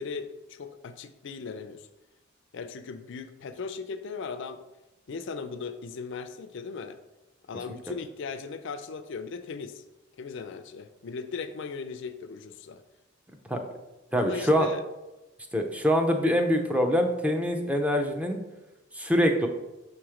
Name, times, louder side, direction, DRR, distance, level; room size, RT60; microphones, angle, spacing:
voice 1, 0.0-1.9 2.5-4.6 5.1-7.0 7.5-9.8 10.2-12.8 14.2-14.8, left 5 dB, 65° left, 10 dB, 0.4 m, -38 dB
voice 2, 14.1-14.7 15.5-18.4 18.9-19.5, equal, 5° right, 4 dB, 0.6 m, -24 dB
6.4 x 3.0 x 4.9 m, 1.0 s
head